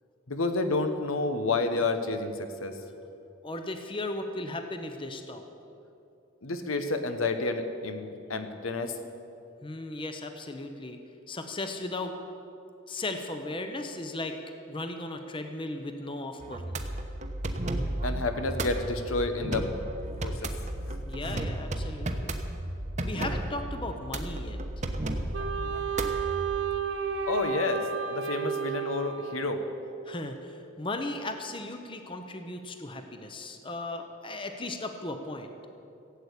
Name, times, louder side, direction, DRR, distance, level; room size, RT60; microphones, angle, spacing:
voice 1, 0.3-2.7 6.4-8.9 18.0-19.7 20.2-20.5 20.9-21.0 27.3-29.6, left 3 dB, 85° left, 7 dB, 1.2 m, -30 dB
voice 2, 3.4-5.4 9.6-11.0 11.3-12.2 12.9-14.4 14.7-16.8 21.1-22.4 23.0-24.8 30.0-35.5, left 2 dB, 25° left, 6 dB, 0.8 m, -36 dB
sound 1, 16.4-26.6, right 1 dB, 35° right, 0.9 m, -34 dB
Wind instrument woodwind instrument, 25.3-29.9, right 6 dB, 60° right, 1.1 m, -32 dB
16.0 x 8.5 x 8.3 m, 2.7 s
head